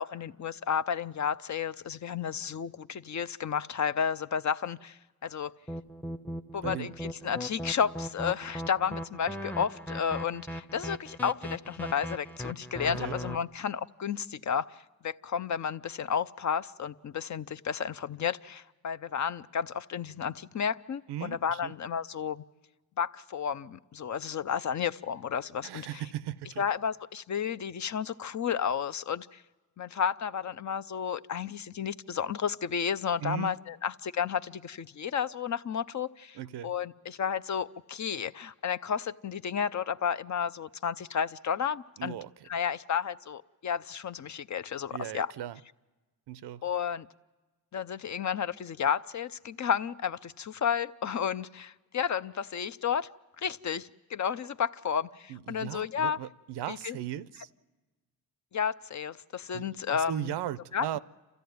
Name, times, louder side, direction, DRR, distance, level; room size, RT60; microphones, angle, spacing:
voice 1, 0.0-5.5 6.5-14.8 15.0-22.4 23.0-26.0 26.6-29.4 29.8-36.4 36.6-42.1 42.5-45.3 46.6-47.1 47.7-53.1 53.4-56.2 56.7-57.0 58.5-60.3 60.7-60.9, left 7 dB, 45° left, 0.6 m, -32 dB
sound 1, 5.7-13.4, equal, 5° left, 0.7 m, -38 dB
voice 2, 6.6-6.9 12.9-13.2 21.1-21.7 25.6-26.6 33.2-33.5 36.3-36.7 42.0-42.3 44.9-45.6 46.3-46.6 55.3-57.5 59.5-61.0, right 12 dB, 80° right, 0.6 m, -37 dB
28.5 x 13.5 x 9.3 m
cardioid pair, 60°, 40 cm